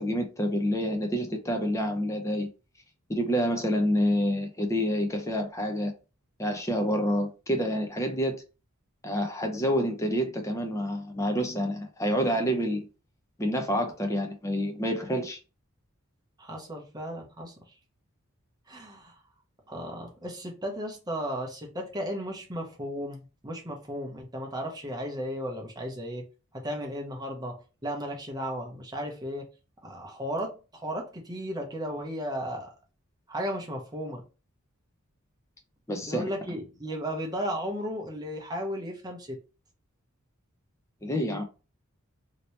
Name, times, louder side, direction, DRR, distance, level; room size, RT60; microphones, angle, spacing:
voice 1, 0.0-2.5 3.1-5.9 6.4-8.4 9.0-12.9 13.4-15.4 35.9-36.3 41.0-41.4, equal, 15° left, 0.5 m, -28 dB
voice 2, 16.4-17.6 18.7-19.2 19.7-26.3 26.5-29.5 29.8-32.7 33.3-34.3 36.1-39.4, equal, 20° right, 0.8 m, -35 dB
2.9 x 2.8 x 3.1 m
head